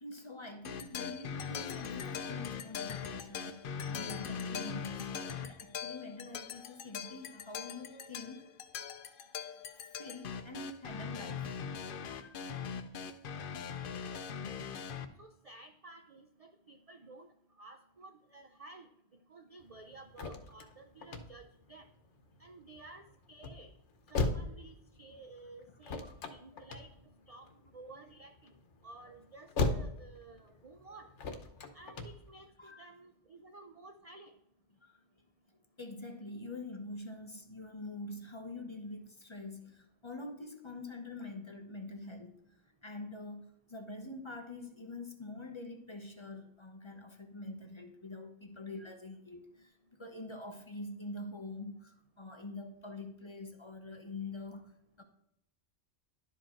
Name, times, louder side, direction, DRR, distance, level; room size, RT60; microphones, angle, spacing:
voice 1, 0.0-8.5 9.4-9.5 9.7-11.5 12.1-12.4 26.5-26.7 27.5-27.6 32.6-32.9 34.8-35.0 35.8-42.3 42.8-55.0, left 2 dB, 25° left, 0.9 m, -45 dB
sound 1, 0.6-15.1, left 6 dB, 55° left, 0.7 m, -41 dB
voice 2, 13.8-14.2 15.2-17.3 17.6-18.9 19.3-21.9 22.4-23.7 24.1-26.9 27.3-27.5 27.7-28.5 28.8-31.1 31.7-32.5 32.8-34.4, right 3 dB, 45° right, 0.5 m, -53 dB
sound 2, 19.6-32.5, left 3 dB, 90° left, 1.2 m, -39 dB
11.5 x 5.0 x 4.4 m
omnidirectional pair, 1.2 m